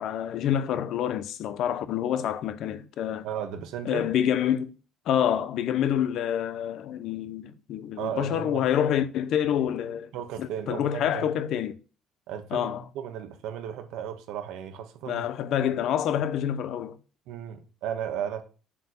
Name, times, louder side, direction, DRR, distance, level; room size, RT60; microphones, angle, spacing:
voice 1, 0.0-3.3 3.8-4.7 5.1-10.1 10.4-11.8 12.5-12.8 15.1-17.0, left 10 dB, 60° left, 0.8 m, -27 dB
voice 2, 3.2-4.1 8.0-8.7 10.1-11.3 12.3-15.3 17.3-18.4, right 9 dB, 80° right, 1.6 m, -35 dB
7.2 x 4.7 x 7.0 m
cardioid pair, 140°, 0 cm